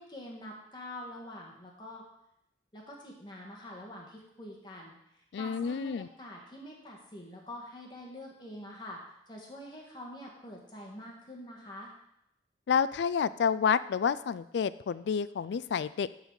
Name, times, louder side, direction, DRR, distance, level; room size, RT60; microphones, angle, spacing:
voice 1, 0.0-2.0 2.7-9.0 9.3-11.9, left 1 dB, 25° left, -2 dB, 1.5 m, -45 dB
voice 2, 5.3-6.1 12.7-16.1, left 6 dB, 80° left, 17 dB, 0.3 m, -29 dB
12.0 x 4.0 x 4.7 m, 0.79 s
head